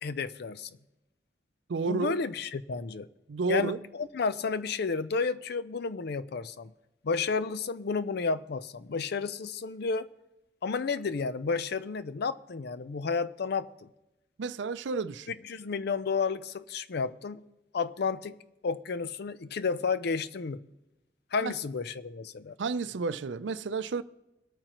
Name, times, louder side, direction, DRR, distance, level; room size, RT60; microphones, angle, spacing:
voice 1, 0.0-0.7 1.8-3.1 3.5-6.7 7.0-10.1 10.6-13.9 15.3-17.4 17.7-18.4 18.6-20.6 21.3-22.5, left 4 dB, 60° left, 0.5 m, -31 dB
voice 2, 1.7-2.1 3.3-3.8 14.4-15.3 21.4-21.5 22.6-24.0, right 4 dB, 75° right, 0.5 m, -31 dB
23.5 x 8.9 x 3.0 m
head